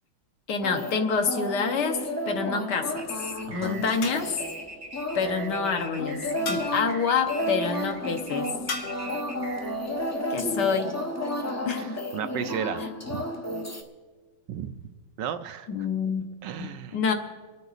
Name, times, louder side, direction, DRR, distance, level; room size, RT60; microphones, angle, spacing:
voice 1, 0.5-4.3 5.1-8.6 10.3-10.9 11.7-12.0 15.7-16.2 16.6-17.1, left 5 dB, 65° left, 6 dB, 1.5 m, -27 dB
sound 1, 0.6-13.8, equal, 20° left, 0.4 m, -32 dB
sound 2, 1.8-2.4 4.0-4.6 6.5-7.0 8.7-9.1, left 4 dB, 85° left, 2.4 m, -36 dB
sound 3, 3.0-10.0, right 2 dB, 45° right, 0.4 m, -43 dB
voice 2, 3.5-3.8 11.8-13.2 14.5-14.7 15.2-15.7 16.4-17.1, right 9 dB, 75° right, 9 dB, 1.2 m, -34 dB
25.5 x 9.2 x 4.0 m, 1.4 s
omnidirectional pair, 2.1 m